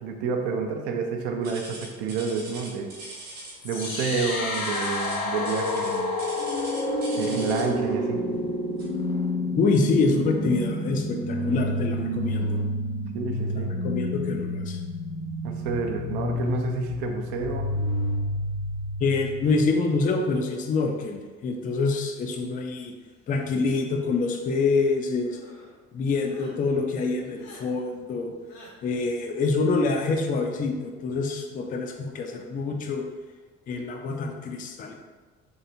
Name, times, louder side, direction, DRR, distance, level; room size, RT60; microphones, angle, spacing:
voice 1, 0.0-2.9 3.6-6.1 7.2-8.2 13.1-13.7 15.4-17.7, right 5 dB, 60° right, 4 dB, 0.6 m, -29 dB
sound 1, 1.4-7.8 8.8-9.0 9.6-9.7 10.4-10.5, right 2 dB, 40° right, 1.3 m, -41 dB
eerie stuff, 3.6-19.6, left 1 dB, 90° left, 0.5 m, -29 dB
voice 2, 9.6-12.6 13.5-14.8 19.0-22.9 23.3-25.4 25.9-28.3 28.8-33.0 33.7-34.9, left 3 dB, 20° left, 3 dB, 0.4 m, -26 dB
sound 2, 23.8-24.7 25.2-25.7 26.2-26.5 27.3-27.6 28.5-28.7, left 2 dB, 70° left, 0.9 m, -50 dB
3.3 x 2.8 x 2.7 m, 1.3 s
figure-of-eight pair, 55°, 40 cm